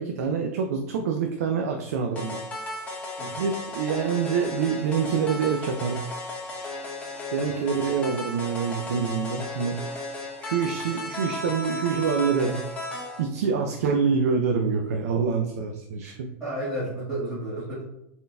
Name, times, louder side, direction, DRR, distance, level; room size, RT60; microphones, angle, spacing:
voice 1, 0.0-2.4 3.4-6.0 7.3-10.1 10.4-12.6 12.9-16.4, right 6 dB, 85° right, 3 dB, 0.4 m, -26 dB
sound 1, 2.1-13.2, left 2 dB, 15° left, 1.1 m, -35 dB
voice 2, 7.4-7.9 16.4-17.8, right 1 dB, 20° right, -10 dB, 1.5 m, -32 dB
4.0 x 3.9 x 2.2 m, 0.84 s
supercardioid pair, 140°, 8 cm